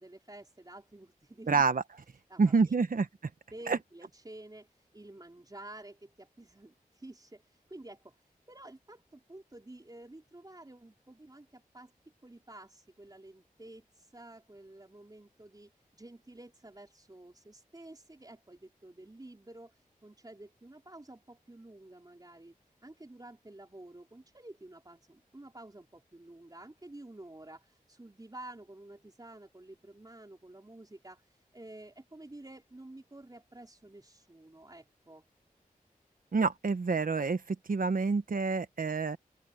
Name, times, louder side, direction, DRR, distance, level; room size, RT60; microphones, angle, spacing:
voice 1, 0.0-1.6 2.3-2.8 3.5-11.9 12.2-22.5 22.8-35.2, right 1 dB, 25° right, 4.3 m, -51 dB
voice 2, 1.5-1.8 2.4-3.1 3.7-3.8 36.3-39.2, right 4 dB, 70° right, 1.3 m, -27 dB
open air
wide cardioid pair, 55°, 15 cm